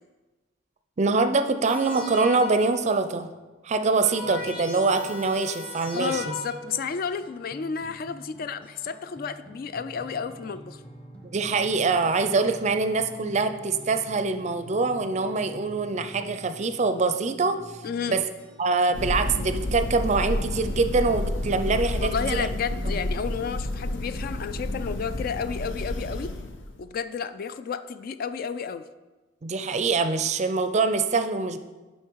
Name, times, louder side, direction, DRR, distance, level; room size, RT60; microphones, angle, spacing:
voice 1, 1.0-3.3 3.6-6.3 11.3-17.6 18.1-18.2 18.6-22.5 22.9-23.0 29.4-31.6, right 3 dB, 35° right, 9 dB, 0.4 m, -24 dB
sound 1, 1.6-3.0 3.7-6.9 7.6-7.7, left 3 dB, 25° left, 2.5 m, -38 dB
sound 2, 4.2-19.0, right 1 dB, 5° left, 0.9 m, -47 dB
voice 2, 5.9-10.8 17.8-18.2 22.0-26.3 26.8-28.9, left 6 dB, 50° left, 12 dB, 0.3 m, -31 dB
Thunder, 18.9-26.8, left 1 dB, 80° left, 0.7 m, -30 dB
8.1 x 5.5 x 4.6 m, 1.2 s
head